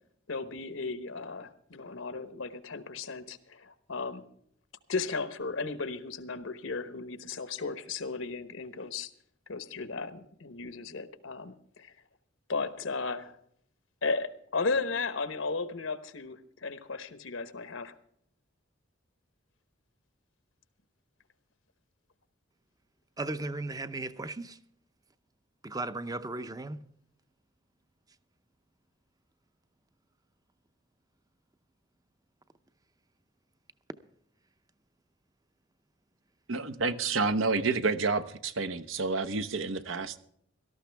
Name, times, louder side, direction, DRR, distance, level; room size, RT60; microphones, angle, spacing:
voice 1, 0.3-4.2 4.9-9.1 9.5-11.9 12.5-13.4 14.0-17.9, left 4 dB, 80° left, 1.1 m, -35 dB
voice 2, 23.2-24.6 25.6-26.8, right 2 dB, 20° right, 0.6 m, -36 dB
voice 3, 36.5-40.2, right 4 dB, 80° right, 0.9 m, -29 dB
17.5 x 13.5 x 3.4 m
head